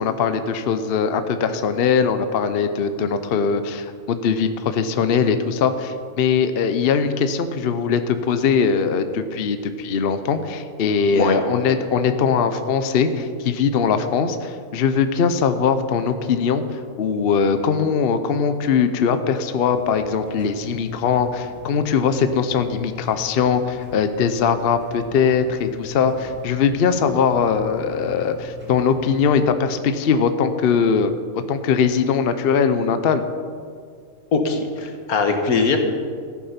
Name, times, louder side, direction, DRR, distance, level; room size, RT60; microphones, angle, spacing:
voice 1, 0.0-31.1 31.5-33.2, left 6 dB, 50° left, 9 dB, 0.8 m, -21 dB
sound 1, 19.7-29.4, left 7 dB, 5° right, 2.4 m, -40 dB
voice 2, 34.3-35.8, left 4 dB, 85° left, 5 dB, 1.7 m, -21 dB
14.5 x 8.6 x 5.8 m, 2.1 s
omnidirectional pair, 1.5 m